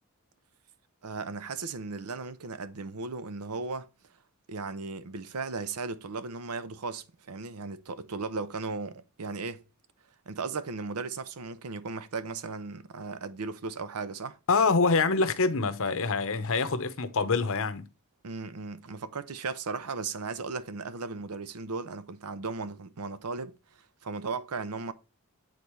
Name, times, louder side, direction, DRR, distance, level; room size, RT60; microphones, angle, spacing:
voice 1, 1.0-3.9 4.5-9.6 10.3-14.4 18.2-23.5 24.0-24.9, right 4 dB, 85° right, 0.7 m, -36 dB
voice 2, 14.5-17.9, left 4 dB, 65° left, 0.8 m, -25 dB
8.8 x 4.1 x 3.0 m
head